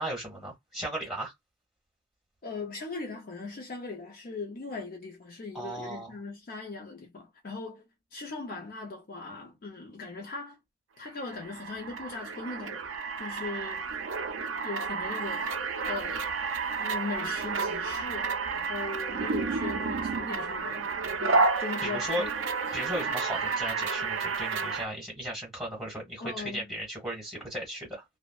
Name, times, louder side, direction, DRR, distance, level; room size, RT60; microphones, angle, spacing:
voice 1, 0.0-1.3 5.5-6.1 21.8-22.2 22.7-28.0, equal, ahead, 1.5 m, -36 dB
voice 2, 2.4-10.6 11.0-14.0 14.6-15.5 15.9-16.3 16.8-20.9 21.2-22.3 26.2-26.8, left 3 dB, 45° left, 0.5 m, -39 dB
sound 1, 11.2-24.9, right 4 dB, 75° right, 0.4 m, -31 dB
2.5 x 2.1 x 2.3 m
head